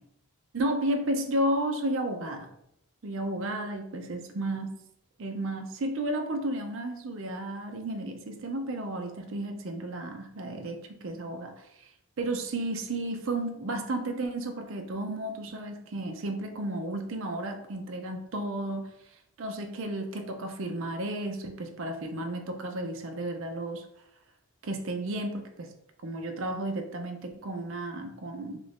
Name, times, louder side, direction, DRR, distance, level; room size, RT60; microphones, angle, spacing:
voice 1, 0.5-2.5 3.0-4.8 5.2-11.5 12.2-18.9 19.4-23.8 24.6-25.7 26.0-28.6, right 1 dB, 60° right, 4 dB, 0.5 m, -33 dB
3.0 x 2.5 x 3.4 m, 0.76 s
head